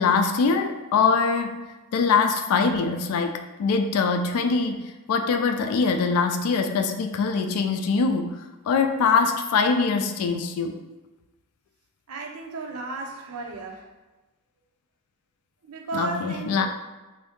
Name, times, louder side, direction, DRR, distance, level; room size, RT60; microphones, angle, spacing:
voice 1, 0.0-1.6 1.9-8.4 8.7-10.8 15.9-16.7, left 5 dB, 75° left, 6 dB, 0.3 m, -23 dB
voice 2, 12.1-13.9 15.6-16.7, right 3 dB, 80° right, 2 dB, 0.5 m, -34 dB
2.6 x 2.6 x 3.5 m, 1.1 s
head